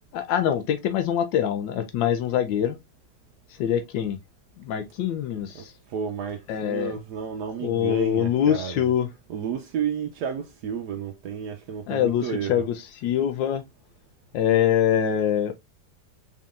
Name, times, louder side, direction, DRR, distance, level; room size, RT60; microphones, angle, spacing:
voice 1, 0.1-2.8 3.6-4.2 4.7-5.7 6.5-7.0 7.6-9.1 11.9-13.6 14.3-15.5, left 9 dB, 80° left, 1.3 m, -24 dB
voice 2, 5.5-8.9 9.3-12.7, right 7 dB, 75° right, 1.1 m, -32 dB
4.2 x 3.6 x 2.4 m
omnidirectional pair, 2.0 m